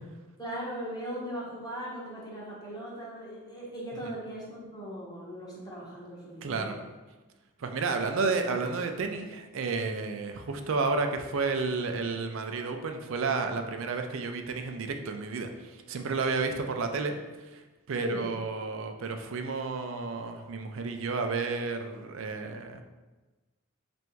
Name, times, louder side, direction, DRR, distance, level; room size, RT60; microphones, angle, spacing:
voice 1, 0.4-6.8 18.0-18.3, right 1 dB, 20° left, -6 dB, 1.0 m, -39 dB
voice 2, 6.4-6.8 7.6-22.8, right 4 dB, 70° right, 6 dB, 0.4 m, -31 dB
3.4 x 2.6 x 4.4 m, 1.2 s
head